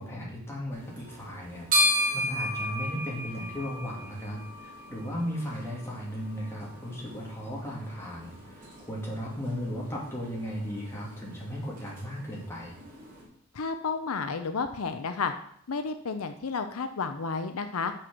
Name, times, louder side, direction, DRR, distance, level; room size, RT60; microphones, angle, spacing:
voice 1, 0.0-12.8, equal, 10° left, -4 dB, 2.2 m, -36 dB
sound 1, 0.7-13.2, equal, 40° right, 2.7 m, -35 dB
voice 2, 13.5-15.3 15.7-17.9, left 5 dB, 75° left, 8 dB, 0.6 m, -31 dB
6.4 x 6.3 x 6.0 m, 0.66 s
head